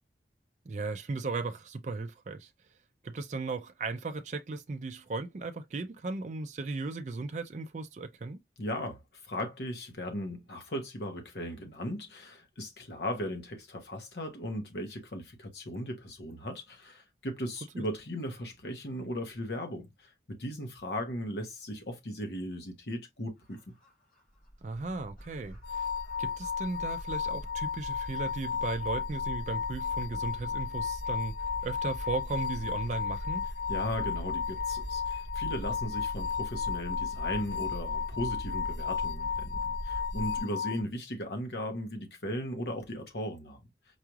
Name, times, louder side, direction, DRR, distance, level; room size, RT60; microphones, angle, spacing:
voice 1, 0.7-2.5 3.0-8.4 17.7-17.8 24.6-25.8 26.2-31.4 31.6-33.5, right 3 dB, 40° right, 0.4 m, -36 dB
voice 2, 8.6-23.6 33.7-43.6, equal, 65° left, 1.2 m, -37 dB
sound 1, 23.4-40.4, equal, 50° left, 2.3 m, -41 dB
sound 2, 25.6-40.8, left 7 dB, 80° left, 0.5 m, -34 dB
4.7 x 3.0 x 2.3 m
head